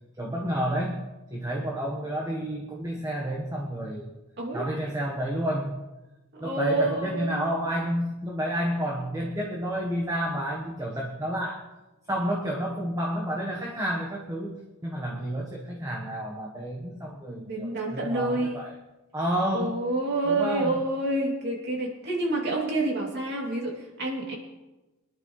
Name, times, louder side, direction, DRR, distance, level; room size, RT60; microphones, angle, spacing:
voice 1, 0.2-1.0 1.3-4.1 4.5-5.8 6.4-11.6 12.1-18.7 19.1-19.8 20.3-20.8, equal, 15° right, -1 dB, 1.2 m, -30 dB
voice 2, 6.3-7.5 17.3-18.6 19.5-24.4, right 2 dB, 50° right, -2 dB, 2.8 m, -28 dB
23.0 x 11.0 x 3.2 m, 1.1 s
head